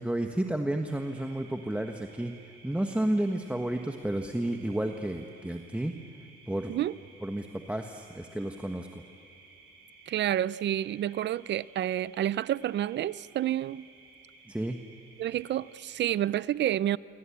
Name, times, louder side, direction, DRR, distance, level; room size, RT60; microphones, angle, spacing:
voice 1, 0.0-2.3 2.6-6.0 6.5-6.8 7.2-9.0 14.5-14.8, right 1 dB, 5° right, 1.4 m, -31 dB
sound 1, 0.9-16.2, right 4 dB, 85° right, 6.2 m, -56 dB
voice 2, 10.1-13.9 15.2-17.0, right 12 dB, 65° right, 0.6 m, -29 dB
28.0 x 25.0 x 8.7 m
cardioid pair, 90°, 20 cm